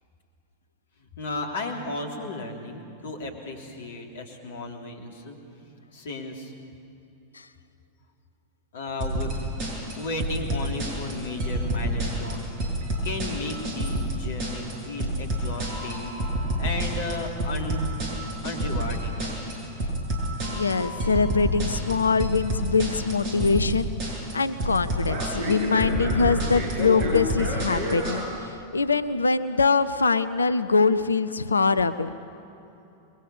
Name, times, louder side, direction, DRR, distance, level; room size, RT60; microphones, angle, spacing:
voice 1, 1.0-6.5 8.7-9.3 10.0-12.5 12.8-17.9 18.4-19.6 20.5-20.6, left 2 dB, 60° left, 2 dB, 3.3 m, -35 dB
sound 1, 9.0-28.2, right 1 dB, 40° right, 7.4 m, -29 dB
voice 2, 20.4-23.9 24.3-32.2, left 4 dB, 75° left, 14 dB, 0.7 m, -23 dB
28.5 x 22.0 x 7.1 m, 2.8 s
figure-of-eight pair, 90°, 0 cm